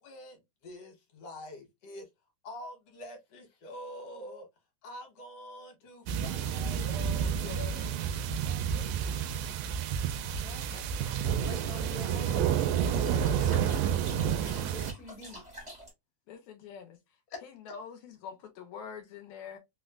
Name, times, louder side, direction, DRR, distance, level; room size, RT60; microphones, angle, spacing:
voice 1, 0.0-2.1 2.4-4.5 4.8-8.1 8.4-9.3, left 1 dB, 60° left, 2.0 m, -46 dB
sound 1, 6.1-14.9, right 8 dB, 80° right, 1.6 m, -30 dB
voice 2, 10.2-12.7 13.1-15.4 17.3-17.4, left 3 dB, 45° left, 1.1 m, -47 dB
sound 2, 11.6-15.9, equal, 35° right, 0.5 m, -49 dB
voice 3, 16.3-17.0 17.4-19.6, left 6 dB, 80° left, 1.9 m, -45 dB
4.8 x 2.1 x 2.4 m
omnidirectional pair, 3.4 m